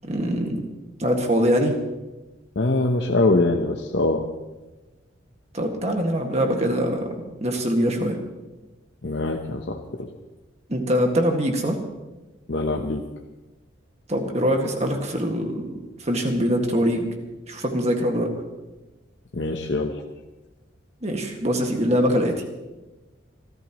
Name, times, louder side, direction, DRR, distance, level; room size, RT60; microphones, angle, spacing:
voice 1, 0.0-0.6 1.0-1.7 5.5-7.1 7.4-8.2 10.7-11.8 14.1-17.1 17.5-18.3 21.0-22.3, equal, 35° right, 3 dB, 1.8 m, -23 dB
voice 2, 2.6-4.3 9.0-10.1 12.5-13.1 19.3-20.0, left 2 dB, 60° left, 2 dB, 0.9 m, -23 dB
26.5 x 13.5 x 3.1 m, 1.1 s
head